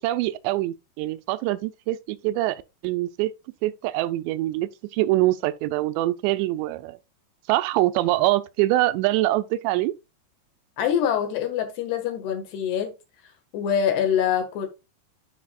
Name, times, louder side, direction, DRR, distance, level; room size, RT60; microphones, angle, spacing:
voice 1, 0.0-3.3 3.6-7.0 7.5-9.9, right 16 dB, 90° right, 2.8 m, -24 dB
voice 2, 10.8-12.9 13.5-14.7, left 8 dB, 75° left, 3.5 m, -24 dB
12.0 x 5.0 x 2.3 m
omnidirectional pair, 5.0 m